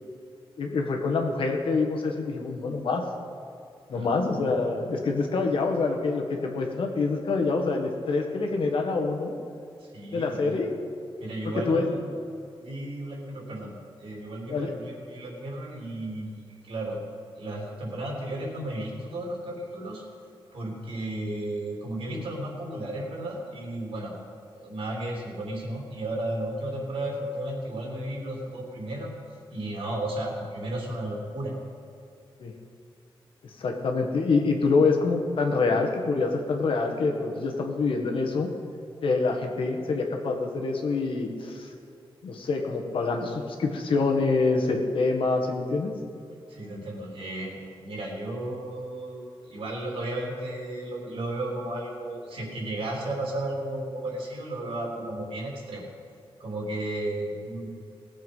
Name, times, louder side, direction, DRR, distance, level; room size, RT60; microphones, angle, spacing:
voice 1, 0.6-3.0 3.9-9.3 10.1-10.7 11.7-11.9 14.5-14.7 32.4-32.5 33.6-38.5 39.0-41.7 42.2-45.9, left 3 dB, 65° left, 2 dB, 1.7 m, -26 dB
voice 2, 9.8-10.6 11.2-12.2 12.6-13.7 14.0-17.0 17.4-20.0 20.5-24.2 24.5-29.2 29.5-31.5 46.5-55.9 56.4-57.7, right 1 dB, 70° right, -2 dB, 3.5 m, -34 dB
19.0 x 7.6 x 5.5 m, 2.6 s
wide cardioid pair, 150°, 10 cm